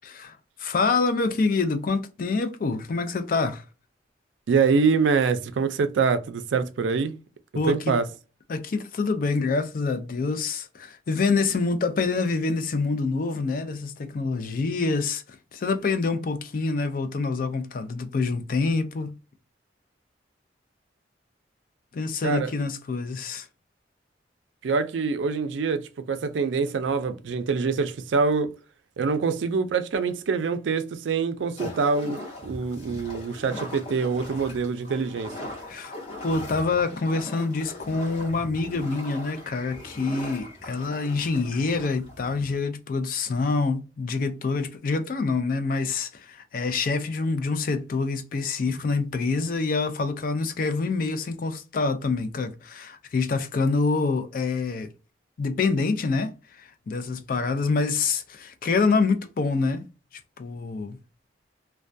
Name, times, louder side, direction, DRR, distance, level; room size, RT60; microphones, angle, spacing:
voice 1, 0.0-3.6 7.5-8.0 8.5-15.2 15.5-19.2 21.9-23.5 35.7-35.9 36.2-54.9 55.4-59.8 60.4-61.0, left 4 dB, 50° left, 0.4 m, -26 dB
voice 2, 4.5-7.2 7.7-8.1 22.2-22.5 24.6-28.5 29.0-35.3, right 5 dB, 85° right, 0.4 m, -25 dB
sound 1, 31.6-42.6, left 1 dB, 35° left, 0.9 m, -40 dB
2.2 x 2.2 x 2.5 m
head